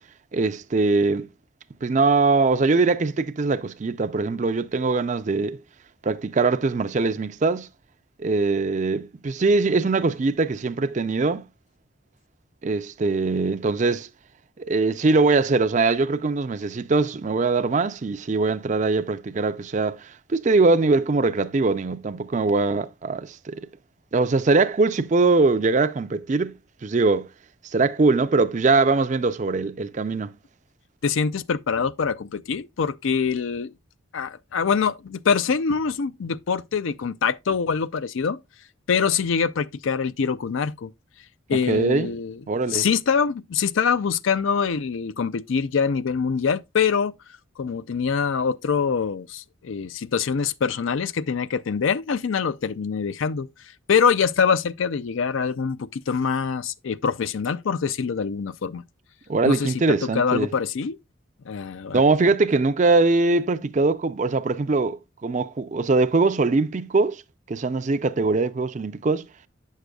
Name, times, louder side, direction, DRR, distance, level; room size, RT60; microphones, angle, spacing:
voice 1, 0.3-1.3 1.8-5.6 6.0-7.7 8.2-11.4 12.6-14.1 14.6-23.7 24.1-27.3 27.7-30.3 41.5-42.1 42.5-42.9 59.3-60.5 61.9-67.2 67.5-69.3, right 3 dB, 35° right, 0.4 m, -22 dB
voice 2, 31.0-33.7 34.1-38.4 38.9-40.9 41.5-42.4 42.7-47.1 47.6-53.5 53.9-58.8 59.4-61.0 61.5-62.0, left 6 dB, 70° left, 0.4 m, -24 dB
8.9 x 6.4 x 2.3 m
head